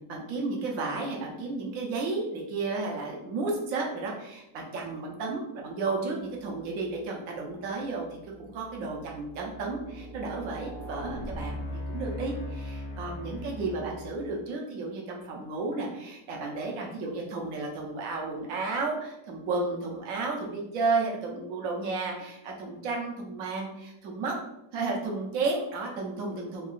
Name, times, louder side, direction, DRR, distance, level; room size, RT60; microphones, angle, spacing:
voice 1, 0.1-24.3 24.7-26.7, right 3 dB, 65° right, 0 dB, 0.9 m, -33 dB
sound 1, 6.8-7.0 7.6-14.5, left 1 dB, 80° left, 1.4 m, -40 dB
3.6 x 2.3 x 2.4 m, 0.87 s
omnidirectional pair, 1.8 m